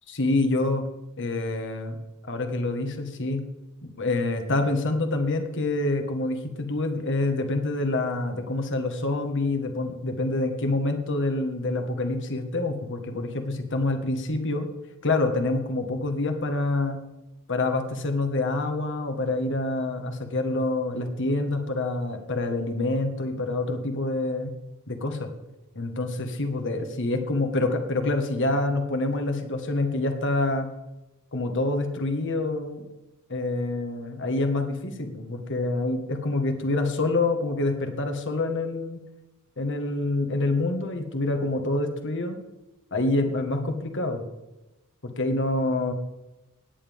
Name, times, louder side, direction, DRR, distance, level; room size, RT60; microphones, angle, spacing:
voice 1, 0.1-0.8 1.2-2.0 2.3-3.4 4.0-14.7 15.0-17.0 17.5-24.5 24.9-25.3 25.8-30.7 31.3-32.8 33.3-39.0 39.6-42.4 42.9-44.2 45.0-45.9, left 2 dB, 60° left, 5 dB, 1.7 m, -26 dB
18.0 x 9.9 x 3.7 m, 1.0 s
head